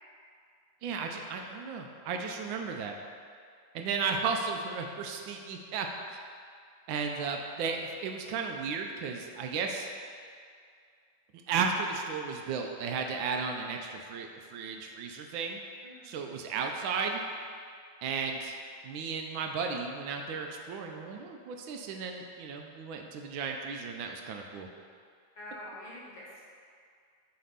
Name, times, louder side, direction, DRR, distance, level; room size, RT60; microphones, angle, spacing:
voice 1, 0.8-3.0 3.7-6.2 6.9-9.9 11.5-15.6 16.0-17.2 18.0-18.5 18.8-24.7, right 5 dB, 80° right, 2 dB, 1.3 m, -34 dB
voice 2, 9.2-9.6 15.8-16.2 25.3-26.4, left 1 dB, 60° left, -6 dB, 2.1 m, -47 dB
6.5 x 3.4 x 5.5 m, 2.2 s
omnidirectional pair, 2.2 m